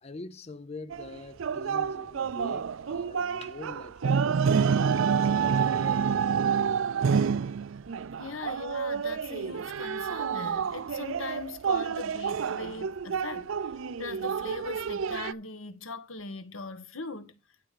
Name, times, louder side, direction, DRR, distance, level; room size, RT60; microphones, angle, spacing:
voice 1, 0.0-6.2, left 3 dB, 30° left, 0.6 m, -45 dB
sound 1, 0.9-15.3, right 6 dB, 75° right, 0.4 m, -28 dB
voice 2, 8.2-17.4, left 4 dB, 85° left, 1.4 m, -40 dB
11.5 x 5.0 x 5.1 m
head